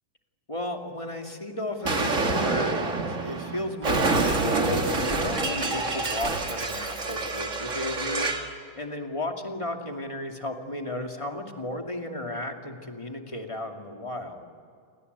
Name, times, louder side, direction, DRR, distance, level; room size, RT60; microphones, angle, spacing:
voice 1, 0.5-8.5 8.8-14.5, left 1 dB, 10° left, 3 dB, 1.9 m, -34 dB
Explosion, 1.8-8.5, right 3 dB, 30° right, 1.9 m, -27 dB
29.5 x 24.0 x 8.2 m, 2.2 s
omnidirectional pair, 3.7 m